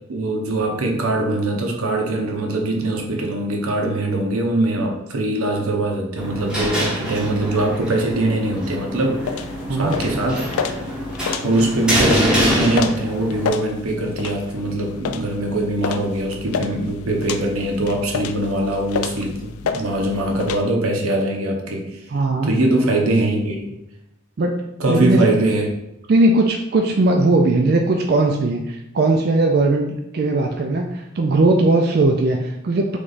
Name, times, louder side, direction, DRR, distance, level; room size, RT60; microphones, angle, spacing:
voice 1, 0.1-9.4 9.7-10.6 11.4-22.0 22.4-23.7 24.8-25.7, right 1 dB, 90° right, 1 dB, 0.8 m, -22 dB
sound 1, 6.2-13.5, equal, 5° right, 0.7 m, -25 dB
sound 2, 9.2-20.6, left 6 dB, 90° left, 0.3 m, -30 dB
voice 2, 9.7-10.0 22.1-22.5 24.4-24.6 24.9-25.3 26.1-29.9 30.1-33.0, right 2 dB, 45° right, 2 dB, 0.3 m, -18 dB
3.3 x 3.0 x 3.9 m, 0.84 s
head